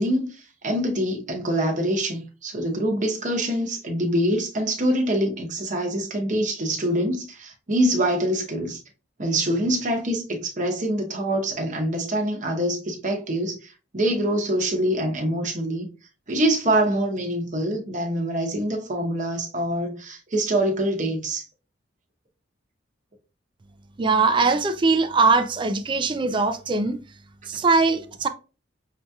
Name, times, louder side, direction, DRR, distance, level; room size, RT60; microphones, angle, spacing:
voice 1, 0.0-8.8 9.2-15.9 16.3-21.4, right 1 dB, 40° right, 0.8 m, -25 dB
voice 2, 24.0-27.0 27.5-28.3, right 4 dB, 25° right, 0.3 m, -21 dB
5.8 x 2.8 x 2.3 m
head